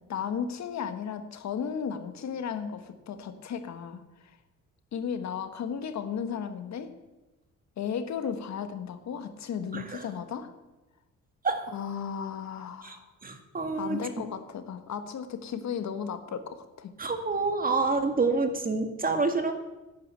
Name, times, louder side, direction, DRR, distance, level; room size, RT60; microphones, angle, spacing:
voice 1, 0.1-4.4 4.9-6.9 7.8-10.5 11.7-13.1 13.8-16.9, left 7 dB, 65° left, 9 dB, 1.6 m, -35 dB
voice 2, 9.7-10.1 11.4-11.7 12.8-13.0 13.2-14.0 17.0-19.5, right 3 dB, 30° right, 6 dB, 1.9 m, -27 dB
11.5 x 9.5 x 9.0 m, 1.1 s
cardioid pair, 90°, 30 cm